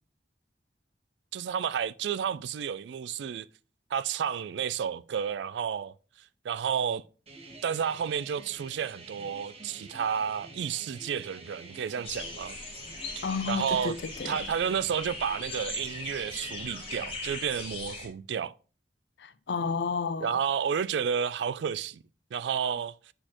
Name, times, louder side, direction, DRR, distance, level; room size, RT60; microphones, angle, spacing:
voice 1, 1.3-3.5 3.9-5.9 6.4-7.0 7.6-12.6 13.2-14.0 14.3-18.5 20.2-22.0 22.3-22.9, right 7 dB, 75° right, 0.3 m, -31 dB
sound 1, 7.3-17.0, right 3 dB, 35° right, 1.2 m, -48 dB
sound 2, 12.0-18.1, left 3 dB, 30° left, 1.6 m, -40 dB
voice 2, 13.2-14.5 19.2-20.4, left 5 dB, 70° left, 0.5 m, -32 dB
7.7 x 4.3 x 3.0 m
head